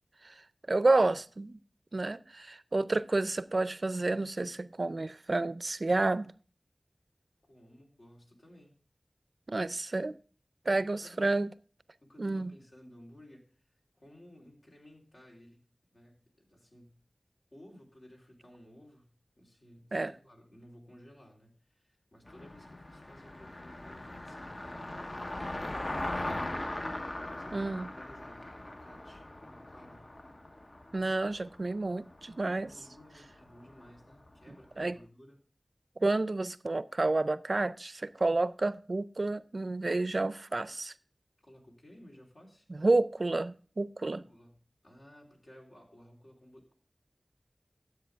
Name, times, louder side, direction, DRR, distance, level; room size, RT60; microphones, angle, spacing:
voice 1, 0.7-1.6 1.9-6.3 9.5-10.1 10.7-11.5 12.2-12.5 19.9-20.1 27.5-27.9 30.9-32.7 34.8-35.0 36.0-40.9 42.8-44.2, right 2 dB, 65° right, 0.4 m, -30 dB
voice 2, 7.4-8.7 11.0-11.4 12.0-15.7 15.9-17.0 17.5-19.1 19.4-30.1 32.6-35.4 41.4-42.7 44.1-46.7, equal, 70° left, 3.5 m, -56 dB
Car passing by, 22.3-34.6, left 1 dB, 50° left, 0.8 m, -40 dB
12.5 x 7.9 x 3.4 m
wide cardioid pair, 50°, 0 cm